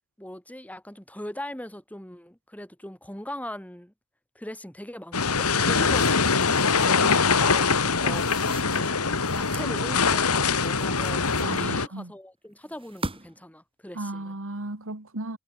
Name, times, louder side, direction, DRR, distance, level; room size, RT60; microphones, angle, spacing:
voice 1, 0.2-3.9 4.3-9.0 9.3-14.4, left 1 dB, 5° left, 6.1 m, -40 dB
sound 1, 5.1-11.9, left 5 dB, 75° left, 2.3 m, -23 dB
sound 2, 5.4-7.1 7.9-9.8 10.4-12.0 12.7-13.5, right 2 dB, 25° right, 6.2 m, -42 dB
voice 2, 11.4-12.1 14.0-15.4, right 2 dB, 65° right, 2.4 m, -35 dB
head